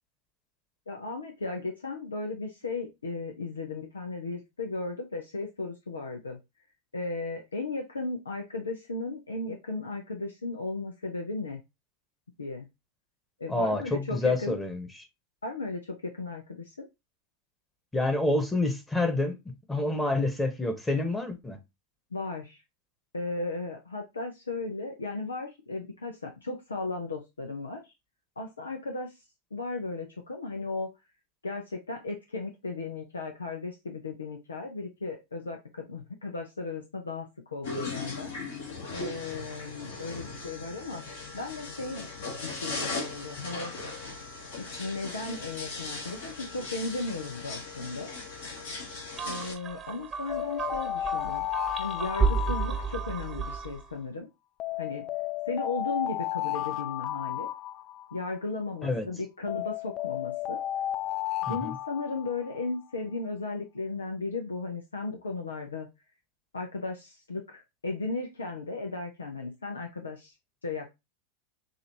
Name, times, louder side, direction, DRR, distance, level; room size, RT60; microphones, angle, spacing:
voice 1, 0.9-6.4 6.9-11.6 12.4-12.7 13.4-14.5 15.4-16.9 22.1-22.6 23.1-27.9 28.4-29.1 29.5-30.9 31.4-38.3 38.9-41.0 41.3-42.1 42.4-43.7 44.6-48.1 49.2-51.5 51.8-54.3 54.8-55.1 55.5-57.5 58.1-60.6 61.5-65.9 66.5-70.3 70.6-70.9, left 3 dB, 85° left, 0.8 m, -35 dB
voice 2, 13.5-14.9 17.9-21.6 58.8-59.1 61.5-61.7, left 2 dB, 10° left, 1.2 m, -28 dB
sound 1, 37.6-49.5, left 3 dB, 70° left, 2.9 m, -38 dB
sound 2, 49.2-53.9, right 5 dB, 30° right, 0.8 m, -32 dB
sound 3, 50.3-53.5 54.6-58.4 59.5-62.7, left 13 dB, 40° left, 0.3 m, -33 dB
6.4 x 2.8 x 2.9 m
figure-of-eight pair, 90°, 0 cm